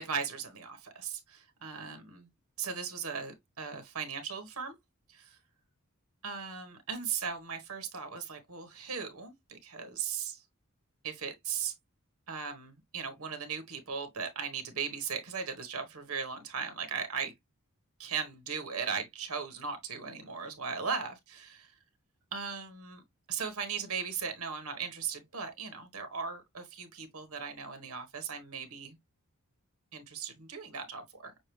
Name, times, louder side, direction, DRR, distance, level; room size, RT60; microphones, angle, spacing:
voice 1, 0.0-2.3 2.6-4.7 5.1-5.4 6.2-10.4 11.0-11.7 12.3-17.3 18.0-21.7 22.3-23.0 23.3-29.0 29.9-31.3, right 6 dB, 75° right, 1.3 m, -38 dB
6.5 x 2.6 x 3.1 m
head